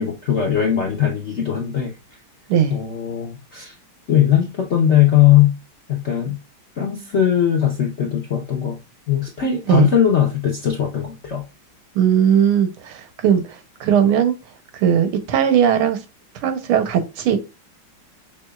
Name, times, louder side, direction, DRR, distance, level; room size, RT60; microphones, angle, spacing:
voice 1, 0.0-1.9 2.7-3.7 4.1-5.6 5.9-6.4 6.8-8.8 9.1-11.4, left 10 dB, 60° left, 0.7 m, -19 dB
voice 2, 11.9-14.3 14.7-16.0 16.4-17.4, right 8 dB, 90° right, 1.7 m, -18 dB
6.0 x 3.5 x 2.3 m
omnidirectional pair, 2.3 m